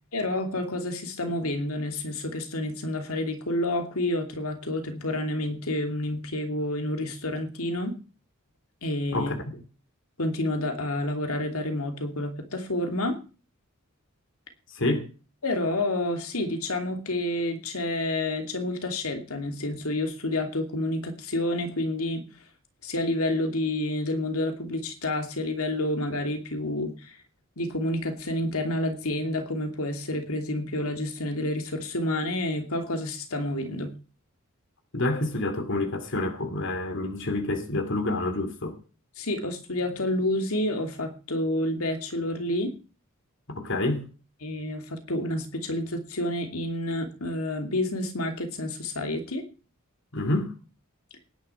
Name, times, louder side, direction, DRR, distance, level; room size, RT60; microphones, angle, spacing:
voice 1, 0.1-8.0 8.8-9.3 10.2-13.2 15.4-22.2 22.8-27.2 27.6-33.9 39.2-42.7 44.4-49.4, left 1 dB, 75° left, 2.7 m, -29 dB
voice 2, 9.1-9.6 14.7-15.1 34.9-38.8 43.5-44.1 50.1-50.5, left 2 dB, 60° left, 2.5 m, -28 dB
19.0 x 10.5 x 4.5 m
head